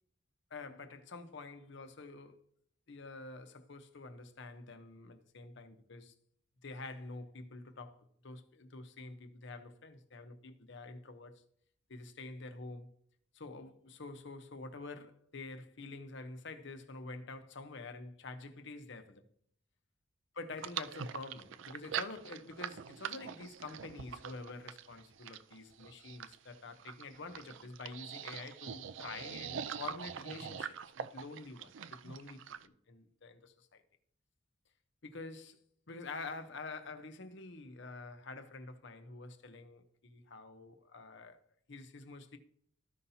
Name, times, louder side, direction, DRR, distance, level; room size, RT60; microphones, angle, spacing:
voice 1, 0.5-2.4 2.9-6.1 6.6-11.4 11.9-12.9 13.3-19.2 20.3-33.8 35.0-35.6 35.9-41.4 41.7-42.4, left 3 dB, 65° left, 0.8 m, -47 dB
sound 1, 20.6-32.7, right 8 dB, 70° right, 0.4 m, -43 dB
14.5 x 5.7 x 2.8 m
head